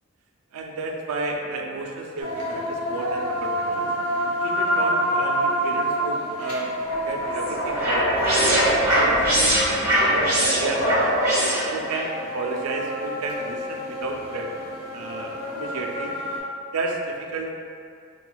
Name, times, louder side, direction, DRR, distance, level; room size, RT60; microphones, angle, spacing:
voice 1, 0.5-3.9 4.4-6.7 7.1-8.2 8.6-11.1 11.7-16.1 16.7-17.5, right 3 dB, 80° right, 1 dB, 0.4 m, -32 dB
sound 1, 2.2-16.4, equal, 80° left, 0.9 m, -28 dB
sound 2, 6.9-12.1, equal, 15° right, 1.1 m, -22 dB
3.8 x 2.2 x 2.2 m, 2.3 s
head